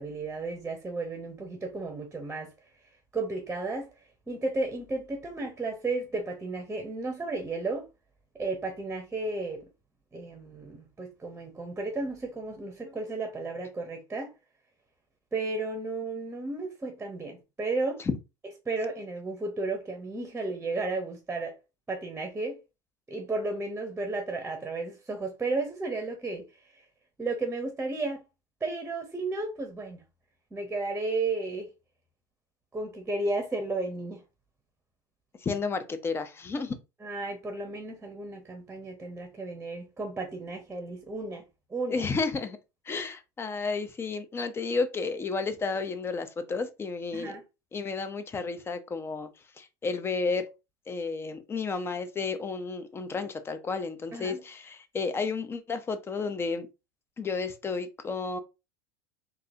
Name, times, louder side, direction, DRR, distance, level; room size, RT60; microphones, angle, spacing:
voice 1, 0.0-2.5 3.1-3.9 4.3-7.9 8.3-9.7 10.1-14.3 15.3-18.0 18.6-21.6 21.9-22.6 23.1-26.8 27.2-28.2 28.6-30.0 30.5-31.7 32.7-34.2 37.0-41.4 41.7-42.1 47.1-47.4 54.1-54.4, right 3 dB, 15° right, 0.9 m, -33 dB
voice 2, 35.4-36.8 41.9-42.6 42.9-47.3 47.7-49.3 49.6-50.5 50.9-56.7 57.2-58.4, left 4 dB, 20° left, 0.7 m, -32 dB
3.8 x 2.7 x 2.7 m
hypercardioid pair, 90°, 11 cm